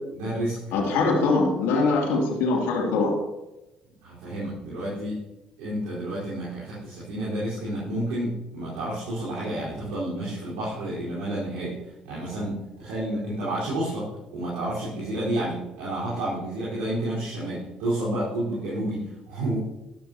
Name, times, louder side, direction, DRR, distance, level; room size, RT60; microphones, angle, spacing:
voice 1, 0.1-0.6 1.0-1.1 4.0-5.2 5.6-11.8 12.0-19.6, right 1 dB, 75° right, -9 dB, 4.3 m, -30 dB
voice 2, 0.7-3.2, left 3 dB, 70° left, -1 dB, 2.7 m, -22 dB
12.5 x 12.0 x 2.9 m, 0.96 s
hypercardioid pair, 50°, 4 cm